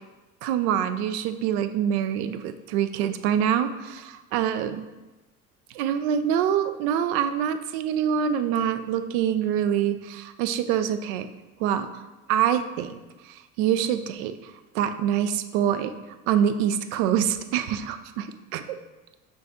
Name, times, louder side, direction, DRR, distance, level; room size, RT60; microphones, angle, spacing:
voice 1, 0.4-4.8 5.7-11.3 11.6-12.0 12.3-13.0 13.2-15.9 16.3-18.6, right 9 dB, 75° right, 11 dB, 0.5 m, -25 dB
5.5 x 2.7 x 3.5 m, 1.1 s
hypercardioid pair, 80°, 44 cm